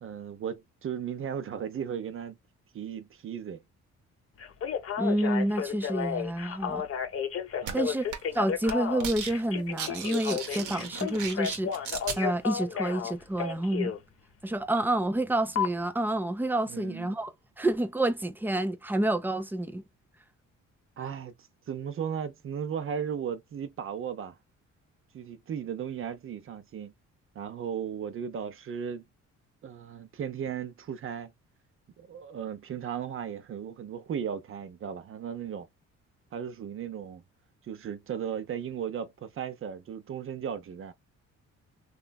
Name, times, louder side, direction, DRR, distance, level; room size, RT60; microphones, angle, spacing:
voice 1, 0.0-2.4 2.7-3.6 7.6-7.9 9.9-10.0 16.7-17.2 21.0-24.4 25.1-26.9 27.3-29.0 29.6-31.3 32.0-35.7 36.3-37.2 37.6-40.9, right 8 dB, 45° right, 0.6 m, -36 dB
Telephone, 4.4-14.0 15.6-15.7, left 8 dB, 50° left, 0.7 m, -32 dB
voice 2, 5.0-6.9 7.7-8.1 8.3-11.8 12.2-14.0 14.4-19.8, right 1 dB, 5° right, 0.4 m, -29 dB
sound 1, 7.7-7.8 8.1-8.4 8.6-9.3 9.6-12.2, right 6 dB, 80° right, 0.9 m, -36 dB
3.1 x 2.4 x 2.2 m
cardioid pair, 90°, 30 cm